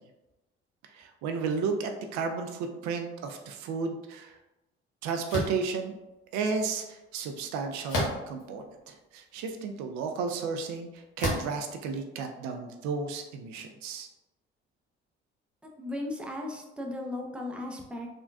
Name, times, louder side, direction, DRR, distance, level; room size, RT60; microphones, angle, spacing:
voice 1, 0.9-4.4 5.0-5.9 6.3-14.1, right 5 dB, 65° right, 5 dB, 0.4 m, -33 dB
sound 1, 5.3-5.6 7.9-8.4 9.2-9.3 11.2-11.6, left 1 dB, 70° left, 1.0 m, -30 dB
voice 2, 15.6-18.1, left 1 dB, 5° right, 0 dB, 0.6 m, -36 dB
3.7 x 2.2 x 2.2 m, 0.99 s
hypercardioid pair, 55°, 30 cm